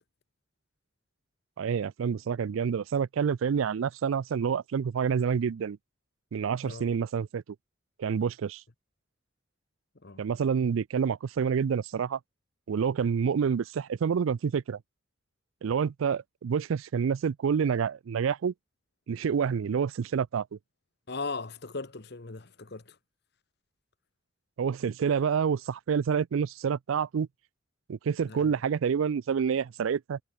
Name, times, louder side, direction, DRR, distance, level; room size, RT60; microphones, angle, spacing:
voice 1, 1.6-5.8 6.3-7.4 8.0-8.6 10.2-12.2 12.7-14.8 15.6-18.5 19.1-20.5 24.6-27.3 27.9-30.2, right 6 dB, 80° right, 0.4 m, -28 dB
voice 2, 21.1-23.0 28.3-28.5, left 3 dB, 55° left, 1.1 m, -38 dB
head